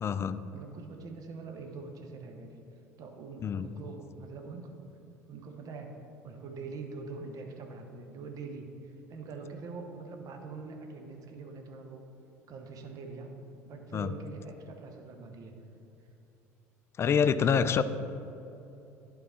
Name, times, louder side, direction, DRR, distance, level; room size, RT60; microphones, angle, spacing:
voice 1, 0.0-0.4 3.4-3.7 13.9-14.1 17.0-17.8, left 7 dB, 30° left, 13 dB, 0.3 m, -26 dB
voice 2, 0.5-2.6 3.0-4.9 5.3-6.0 6.2-12.0 12.5-13.3 13.6-15.5, right 4 dB, 45° right, 4 dB, 0.8 m, -44 dB
11.0 x 3.8 x 4.3 m, 3.0 s
figure-of-eight pair, 65°, 8 cm